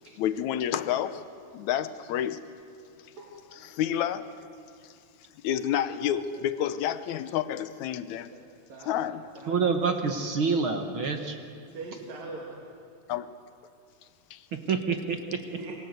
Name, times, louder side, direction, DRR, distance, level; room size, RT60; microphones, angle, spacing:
voice 1, 0.2-1.3 1.5-2.5 3.6-4.3 4.8-4.9 5.4-8.3 8.9-9.3 13.1-13.3 14.3-14.4, left 10 dB, 70° left, 1.9 m, -29 dB
voice 2, 3.2-3.7 6.3-6.4 8.3-8.4 8.7-9.6 11.7-12.6 15.5-15.7, right 3 dB, 75° right, 4.5 m, -42 dB
voice 3, 9.5-11.4 14.5-15.4, right 5 dB, 55° right, 1.6 m, -27 dB
27.5 x 23.5 x 8.1 m
omnidirectional pair, 3.9 m